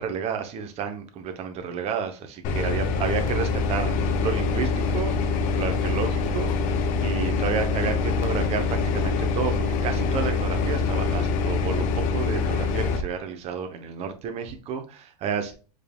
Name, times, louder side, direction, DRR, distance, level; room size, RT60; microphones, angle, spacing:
voice 1, 0.0-15.5, right 7 dB, 30° right, 6 dB, 0.8 m, -31 dB
sound 1, 2.4-13.0, left 4 dB, 40° left, 0.7 m, -25 dB
4.6 x 3.6 x 2.2 m, 0.34 s
hypercardioid pair, 115°, 20 cm